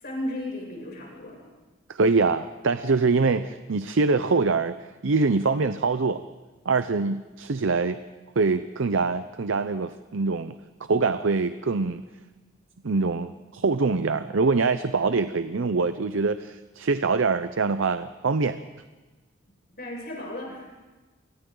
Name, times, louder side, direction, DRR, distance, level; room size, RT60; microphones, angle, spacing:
voice 1, 0.0-1.4 19.8-20.9, left 1 dB, 50° left, -2 dB, 7.3 m, -35 dB
voice 2, 1.9-4.8 5.0-6.2 6.7-8.0 8.4-10.5 10.9-12.0 12.8-18.6, right 4 dB, 75° right, 11 dB, 0.6 m, -24 dB
29.5 x 25.0 x 3.9 m, 1.2 s
head